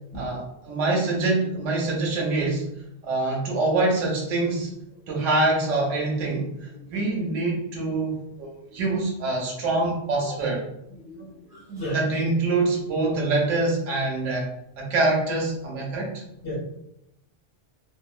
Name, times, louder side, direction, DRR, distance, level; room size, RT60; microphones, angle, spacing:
voice 1, 0.1-2.6 3.0-4.7 5.1-10.6 11.9-14.5 14.8-16.2, right 2 dB, 90° right, -2 dB, 1.0 m, -25 dB
voice 2, 10.9-12.1 16.4-16.6, equal, 60° left, -11 dB, 1.2 m, -35 dB
2.7 x 2.5 x 2.4 m, 0.81 s
omnidirectional pair, 1.3 m